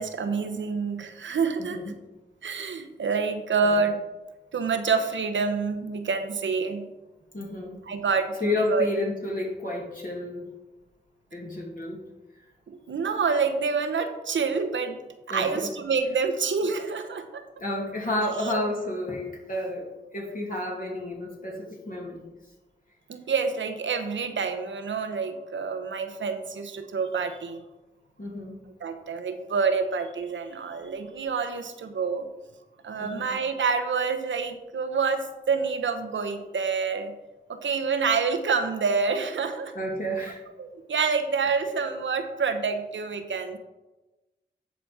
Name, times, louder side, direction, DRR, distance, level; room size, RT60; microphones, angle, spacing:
voice 1, 0.0-1.9 2.4-4.0 4.5-6.9 7.8-8.9 12.7-15.0 15.3-17.4 18.2-18.6 23.1-27.6 28.8-32.3 32.8-37.1 37.5-39.7 40.6-43.6, right 5 dB, 85° right, 8 dB, 0.8 m, -27 dB
voice 2, 1.6-1.9 3.7-3.8 7.3-7.9 8.4-10.5 11.3-12.1 15.3-15.7 17.6-22.2 28.2-28.7 33.0-33.3 39.7-40.4, left 1 dB, 45° left, -3 dB, 2.2 m, -31 dB
10.5 x 4.1 x 4.7 m, 1.1 s
cardioid pair, 40°, 19 cm